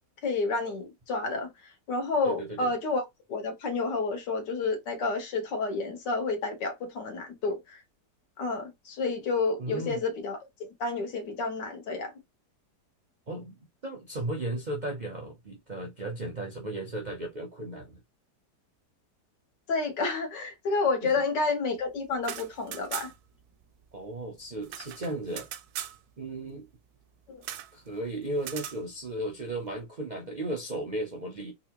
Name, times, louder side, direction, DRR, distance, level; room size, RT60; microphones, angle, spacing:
voice 1, 0.2-7.8 8.4-12.1 19.7-23.1 27.3-27.4, left 3 dB, 85° left, 1.9 m, -30 dB
voice 2, 2.2-2.7 9.6-10.0 13.3-18.0 23.9-25.5 26.2-26.6 27.7-31.5, right 1 dB, 50° right, 0.5 m, -35 dB
sound 1, 22.1-23.4 23.6-23.7 24.0-26.0 27.4-27.7 28.4-28.8, right 10 dB, 75° right, 1.0 m, -39 dB
3.9 x 2.6 x 2.9 m
omnidirectional pair, 1.9 m